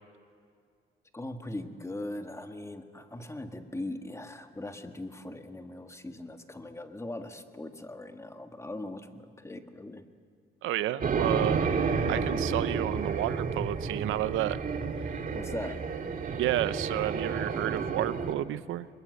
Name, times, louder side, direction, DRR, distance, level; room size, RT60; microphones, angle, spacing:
voice 1, 1.1-10.0 15.3-15.8, left 1 dB, 15° left, 6 dB, 1.7 m, -40 dB
voice 2, 10.6-11.7 12.1-14.6 16.4-18.9, right 14 dB, 85° right, 15 dB, 0.7 m, -31 dB
sound 1, 11.0-18.3, right 5 dB, 45° right, 2.0 m, -31 dB
23.5 x 21.5 x 7.9 m, 2.2 s
cardioid pair, 90°, 20 cm